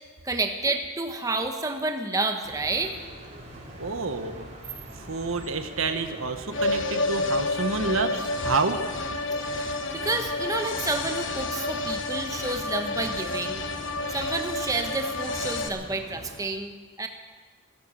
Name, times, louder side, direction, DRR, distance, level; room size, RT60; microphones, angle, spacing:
voice 1, 0.2-2.9 9.4-13.6 14.1-17.1, right 2 dB, 15° right, 5 dB, 0.9 m, -30 dB
sound 1, 2.4-16.4, right 1 dB, 35° right, 4.5 m, -43 dB
voice 2, 3.7-4.5 5.0-8.8, right 3 dB, 90° right, 8 dB, 1.2 m, -28 dB
sound 2, 6.5-15.7, left 2 dB, 70° left, 1.1 m, -30 dB
16.5 x 11.5 x 7.6 m, 1.5 s
head